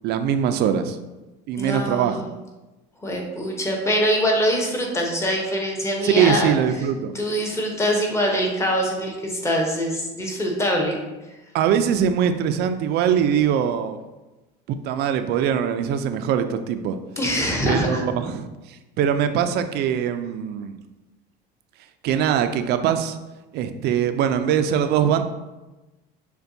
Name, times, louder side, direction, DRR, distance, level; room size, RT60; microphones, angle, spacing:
voice 1, 0.0-1.0 1.5-2.2 6.0-7.1 11.5-14.0 14.7-17.0 17.6-20.8 22.0-23.2 23.5-25.2, right 8 dB, 55° right, 9 dB, 0.4 m, -22 dB
voice 2, 1.6-2.2 3.0-6.5 7.1-11.0 17.2-18.0, equal, 15° left, 0 dB, 0.9 m, -23 dB
6.7 x 2.2 x 2.6 m, 1.1 s
cardioid pair, 120°, 21 cm